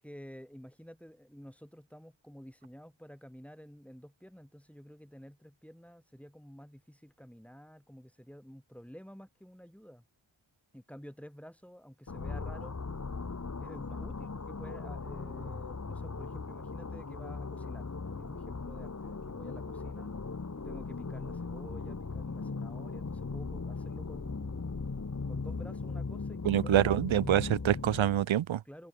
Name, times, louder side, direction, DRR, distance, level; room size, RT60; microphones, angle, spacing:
voice 1, 0.0-10.0 10.7-12.8 13.6-20.1 20.5-24.7 25.3-27.0 28.6-28.9, equal, 5° left, 4.3 m, -51 dB
sound 1, 12.1-28.3, left 4 dB, 35° left, 1.4 m, -38 dB
voice 2, 26.4-28.6, right 11 dB, 75° right, 0.6 m, -26 dB
wide cardioid pair, 45°, 47 cm